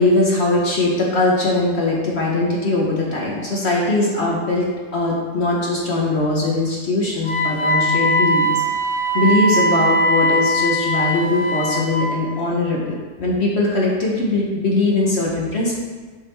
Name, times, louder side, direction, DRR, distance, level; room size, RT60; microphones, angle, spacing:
voice 1, 0.0-4.7 4.9-8.5 9.1-15.7, left 2 dB, 45° left, -3 dB, 0.9 m, -20 dB
Wind instrument woodwind instrument, 7.2-12.1, equal, 75° left, 2.0 m, -20 dB
6.9 x 4.9 x 3.4 m, 1.4 s
omnidirectional pair, 2.0 m